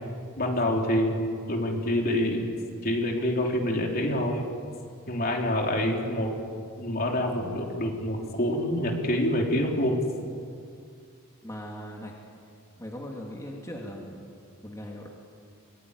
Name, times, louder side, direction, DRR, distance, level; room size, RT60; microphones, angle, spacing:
voice 1, 0.4-2.5 2.8-4.4 5.1-6.3 6.8-10.0, left 1 dB, 45° left, 1 dB, 3.6 m, -26 dB
voice 2, 11.4-12.3 12.8-14.2 14.6-15.1, equal, 15° left, -1 dB, 2.7 m, -39 dB
25.0 x 22.0 x 9.8 m, 2.3 s
head